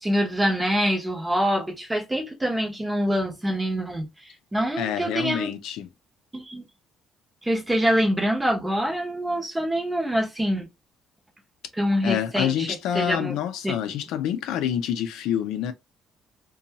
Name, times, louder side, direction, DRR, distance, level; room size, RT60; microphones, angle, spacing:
voice 1, 0.0-5.5 6.3-6.7 7.4-10.7 11.8-13.4 13.6-13.8, equal, 10° right, 0.8 m, -25 dB
voice 2, 4.8-5.9 12.0-15.7, left 10 dB, 80° left, 0.4 m, -27 dB
2.6 x 2.3 x 2.8 m
cardioid pair, 145°, 0 cm